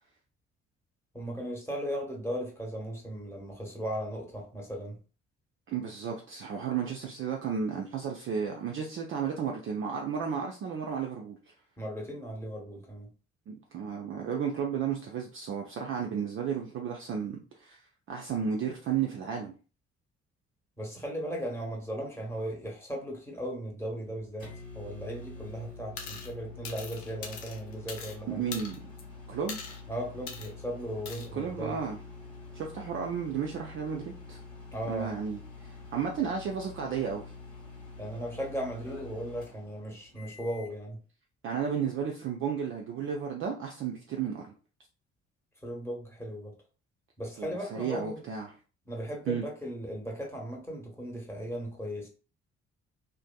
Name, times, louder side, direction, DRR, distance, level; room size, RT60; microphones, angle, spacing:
voice 1, 1.1-5.0 11.8-13.1 20.8-28.4 29.9-31.8 34.7-35.1 38.0-41.0 45.6-46.5 47.2-48.2 48.9-52.1, equal, 5° left, 1.0 m, -37 dB
voice 2, 5.7-11.4 13.5-17.8 18.1-19.5 28.3-28.8 29.3-29.8 31.3-32.0 32.5-34.4 34.9-37.3 41.4-44.5 47.4-48.5 49.3-49.4, right 7 dB, 35° right, 0.4 m, -33 dB
sound 1, 23.9-40.8, left 3 dB, 85° left, 1.5 m, -47 dB
sound 2, 26.0-26.3 26.6-28.2 28.5-29.0 29.5-29.8 30.3-30.5 31.1-31.3, left 5 dB, 65° left, 0.6 m, -41 dB
2.5 x 2.5 x 2.2 m
figure-of-eight pair, 45°, 38 cm